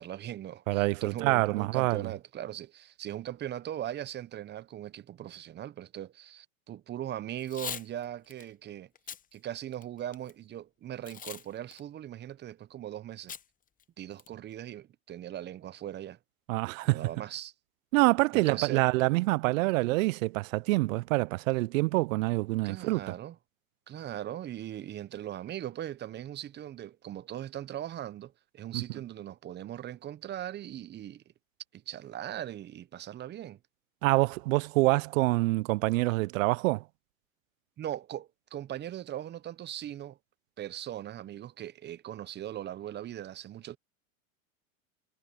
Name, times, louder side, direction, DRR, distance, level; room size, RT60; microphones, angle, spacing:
voice 1, 0.0-8.9 9.3-13.3 14.0-16.2 16.8-17.5 18.3-18.8 19.8-20.0 22.6-23.4 23.9-31.2 31.7-33.6 37.8-40.2 40.6-43.8, right 11 dB, 25° right, 0.8 m, -39 dB
voice 2, 0.7-2.1 16.5-17.1 17.9-23.1 28.7-28.8 34.0-36.8, right 22 dB, 65° right, 0.5 m, -26 dB
Packing tape duct tape / Tearing, 7.4-7.9 8.3-8.4 8.9-9.2 9.7-10.3 11.0-11.4 11.7-11.8 13.3-13.4 13.8-13.9 14.2-14.5, left 8 dB, 20° left, 0.9 m, -40 dB
hypercardioid pair, 110°, 42 cm